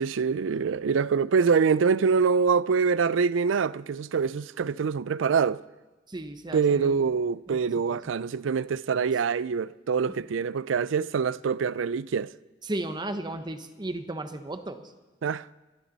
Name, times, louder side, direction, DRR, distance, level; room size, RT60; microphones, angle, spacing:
voice 1, 0.0-5.6 6.5-12.3 15.2-15.5, right 5 dB, 85° right, 0.4 m, -25 dB
voice 2, 6.1-7.1 7.5-7.6 7.9-8.1 10.1-10.2 12.6-14.9, right 1 dB, 25° right, 1.0 m, -35 dB
28.0 x 12.5 x 4.1 m
head